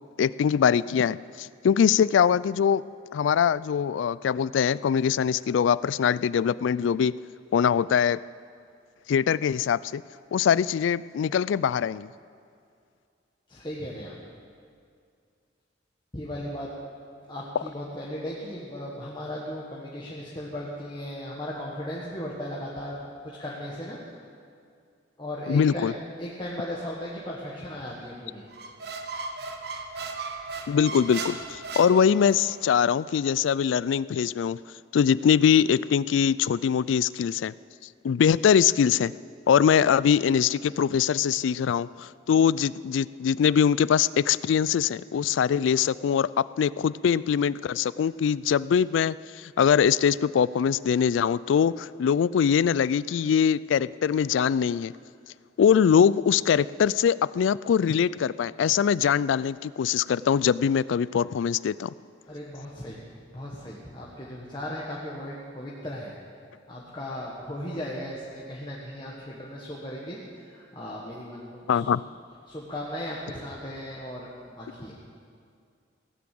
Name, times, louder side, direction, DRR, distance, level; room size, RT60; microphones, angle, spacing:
voice 1, 0.2-2.8 3.1-7.1 7.5-8.2 9.1-10.0 10.3-12.1 25.5-25.9 30.7-34.6 34.9-37.5 38.0-39.1 39.5-54.9 55.6-61.9 71.7-72.0, left 7 dB, 85° left, 20 dB, 0.3 m, -22 dB
voice 2, 13.5-14.2 16.1-16.7 17.3-24.0 25.2-25.9 26.2-28.5 62.3-63.0 63.3-66.2 66.7-71.9 72.5-74.9, equal, 25° left, -4 dB, 1.5 m, -36 dB
Squeak, 28.5-32.6, right 4 dB, 55° right, 1.1 m, -36 dB
17.0 x 9.6 x 7.7 m, 2.3 s
head